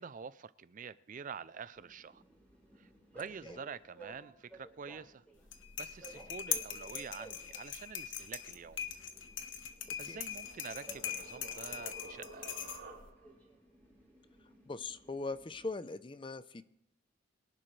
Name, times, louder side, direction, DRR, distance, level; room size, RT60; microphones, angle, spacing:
voice 1, 0.0-2.2 2.8-2.9 3.1-5.2 5.8-8.8 10.0-12.9, right 6 dB, 40° right, 0.4 m, -47 dB
Train, 1.7-15.7, right 2 dB, 5° left, 7.2 m, -57 dB
sound 1, 5.4-13.1, left 9 dB, 65° left, 1.4 m, -41 dB
sound 2, 9.7-13.5, right 3 dB, 55° right, 3.6 m, -53 dB
voice 2, 14.7-16.6, left 3 dB, 25° left, 0.6 m, -40 dB
23.5 x 11.5 x 3.3 m
head